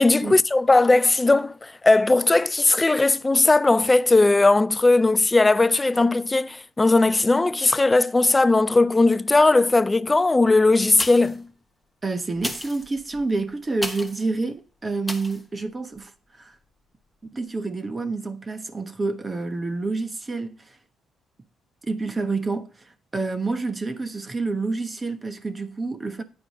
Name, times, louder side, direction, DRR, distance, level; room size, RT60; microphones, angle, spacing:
voice 1, 0.0-11.5, left 2 dB, 20° left, 0.4 m, -18 dB
sound 1, 10.9-11.5 12.3-14.3 15.0-15.4 16.0-16.1, left 1 dB, 5° left, 1.1 m, -34 dB
voice 2, 12.0-16.5 17.3-20.8 21.8-22.8 23.1-26.2, right 3 dB, 25° right, 1.1 m, -28 dB
9.4 x 4.7 x 5.0 m
cardioid pair, 90°, 0 cm